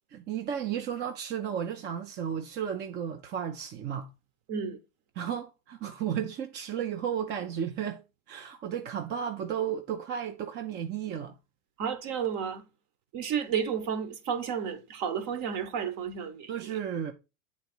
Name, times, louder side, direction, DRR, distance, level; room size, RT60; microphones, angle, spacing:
voice 1, 0.1-4.1 5.2-11.3 16.5-17.1, right 8 dB, 25° right, 0.5 m, -33 dB
voice 2, 11.8-12.6 13.1-16.7, right 7 dB, 40° right, 1.2 m, -32 dB
8.1 x 4.0 x 4.4 m
supercardioid pair, 140°, 43 cm